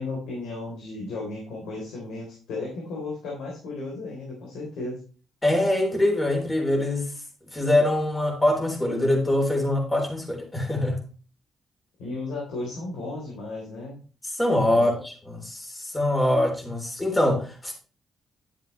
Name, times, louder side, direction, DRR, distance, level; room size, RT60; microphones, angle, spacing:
voice 1, 0.0-5.0 12.0-14.0 14.7-14.8, left 2 dB, 85° left, 3.8 m, -34 dB
voice 2, 5.4-7.1 7.5-11.0 14.4-17.7, left 1 dB, 15° left, 3.7 m, -23 dB
11.0 x 7.4 x 3.3 m
cardioid pair, 90°, 0 cm